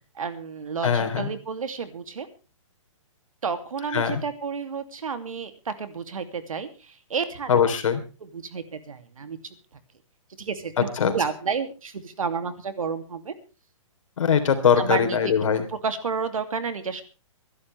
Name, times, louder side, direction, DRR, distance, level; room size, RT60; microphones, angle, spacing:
voice 1, 0.2-2.3 3.4-7.6 8.2-9.8 10.4-13.3 14.8-17.0, right 5 dB, 85° right, 9 dB, 2.7 m, -31 dB
voice 2, 0.8-1.3 3.9-4.2 7.5-8.0 11.0-11.1 14.2-15.6, left 7 dB, 70° left, 8 dB, 3.5 m, -21 dB
24.5 x 11.5 x 3.4 m, 0.32 s
hypercardioid pair, 150°, 17 cm